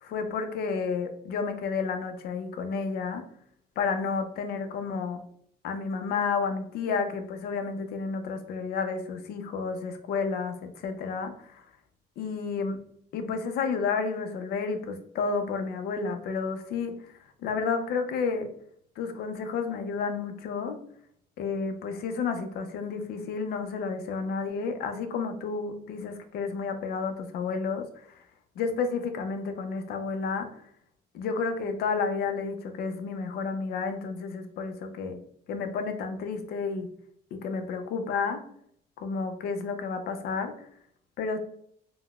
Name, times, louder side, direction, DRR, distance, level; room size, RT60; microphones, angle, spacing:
voice 1, 0.0-3.2 3.8-5.2 5.6-11.6 12.2-12.8 13.1-17.1 17.4-18.5 19.0-20.8 21.4-28.2 28.6-30.5 31.1-35.2 35.5-36.9 37.3-38.4 39.0-40.5 41.2-41.4, left 5 dB, 65° left, 7 dB, 0.5 m, -31 dB
3.7 x 2.1 x 2.3 m, 0.67 s
cardioid pair, 110°, 17 cm